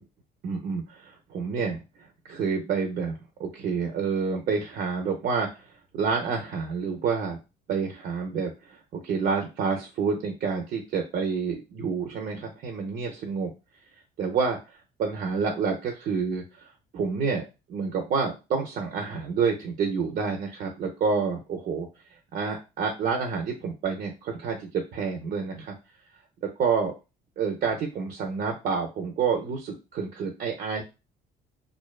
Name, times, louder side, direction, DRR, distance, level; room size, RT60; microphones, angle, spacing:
voice 1, 0.4-7.4 7.7-13.5 14.2-16.7 16.9-17.4 17.7-21.9 22.3-25.7 26.6-26.9 27.4-30.8, right 5 dB, 55° right, 3 dB, 0.5 m, -28 dB
2.5 x 2.1 x 2.3 m, 0.27 s
cardioid pair, 110°, 17 cm